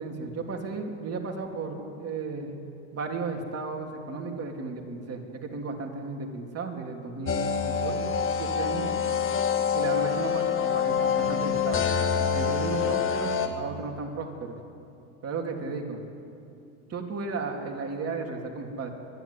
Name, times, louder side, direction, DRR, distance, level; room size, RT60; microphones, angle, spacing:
voice 1, 0.0-2.6 2.9-8.9 9.7-11.9 12.3-14.6 15.2-16.0 16.9-18.9, right 4 dB, 35° right, 2 dB, 3.3 m, -34 dB
sound 1, 7.2-13.5, left 7 dB, 30° left, 1.9 m, -26 dB
24.0 x 11.0 x 10.0 m, 2.5 s
hypercardioid pair, 90°, 43 cm